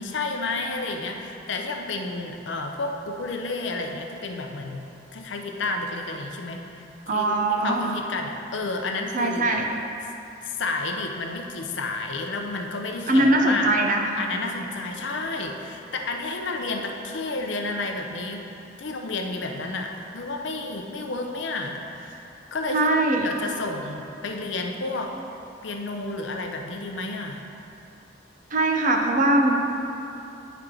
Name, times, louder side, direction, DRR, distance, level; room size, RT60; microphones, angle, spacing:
voice 1, 0.0-4.9 5.1-9.5 10.4-13.7 14.1-18.5 18.8-25.2 25.6-27.4, left 3 dB, 75° left, 3 dB, 0.6 m, -31 dB
voice 2, 7.1-7.9 9.1-9.7 13.1-14.1 22.7-23.3 28.5-29.6, right 2 dB, 45° right, 2 dB, 0.6 m, -21 dB
9.1 x 4.6 x 3.7 m, 2.8 s
head